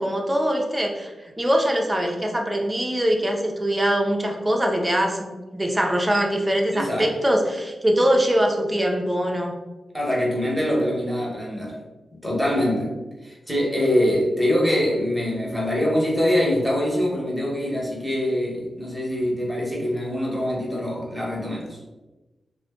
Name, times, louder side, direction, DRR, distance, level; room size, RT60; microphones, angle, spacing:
voice 1, 0.0-9.5, equal, 20° right, 1 dB, 0.6 m, -22 dB
voice 2, 6.7-7.1 9.9-11.8 12.2-12.9 13.2-21.8, left 1 dB, ahead, -4 dB, 1.2 m, -24 dB
2.4 x 2.2 x 3.6 m, 1.1 s
supercardioid pair, 45°, 0 cm